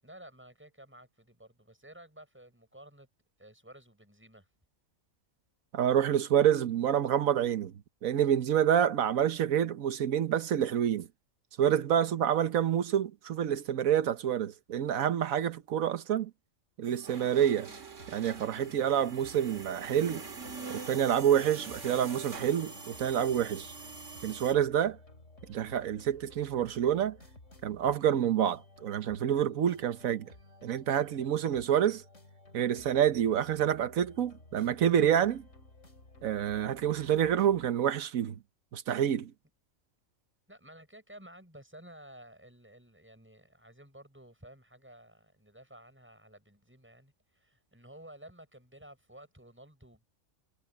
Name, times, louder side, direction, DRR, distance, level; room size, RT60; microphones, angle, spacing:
voice 1, 0.0-3.1 3.4-4.5 40.5-50.0, right 1 dB, 10° right, 7.0 m, -53 dB
voice 2, 5.7-7.7 8.0-11.1 11.6-16.3 16.8-17.7 18.1-20.3 20.7-23.7 24.2-25.0 25.5-27.2 27.6-30.3 30.6-32.0 32.5-35.4 36.2-38.4 38.7-39.3, right 9 dB, 85° right, 1.3 m, -28 dB
sound 1, 16.9-24.5, right 4 dB, 60° right, 2.6 m, -44 dB
sound 2, 18.0-37.7, left 2 dB, 60° left, 4.7 m, -55 dB
omnidirectional pair, 1.4 m